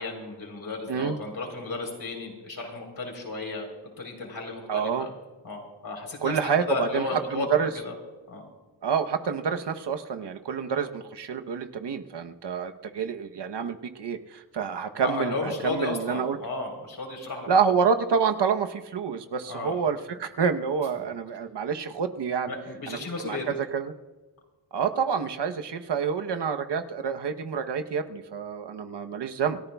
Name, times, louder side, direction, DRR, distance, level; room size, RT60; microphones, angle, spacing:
voice 1, 0.0-3.7 4.0-5.1 5.4-6.3 6.7-7.5 7.8-7.9 8.3-8.4 15.0-17.5 19.5-19.8 22.5-23.5, left 3 dB, 55° left, 2 dB, 3.9 m, -33 dB
voice 2, 4.7-5.1 6.2-7.7 8.8-16.4 17.5-22.5 22.9-23.0 23.2-23.9 24.7-29.6, right 6 dB, 70° right, 7 dB, 1.0 m, -28 dB
28.0 x 14.0 x 2.3 m, 1.2 s
wide cardioid pair, 110°, 42 cm